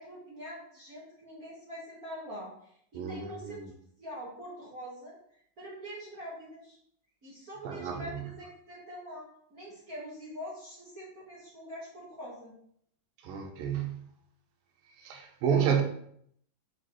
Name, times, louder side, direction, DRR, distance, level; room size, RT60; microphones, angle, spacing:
voice 1, 0.0-3.6 4.0-6.8 7.2-12.5, equal, 45° right, 1.1 m, -44 dB
voice 2, 2.9-3.7 7.6-8.2 13.2-14.1 15.0-15.8, right 7 dB, 80° right, 2.5 m, -30 dB
6.3 x 5.0 x 3.1 m
omnidirectional pair, 4.1 m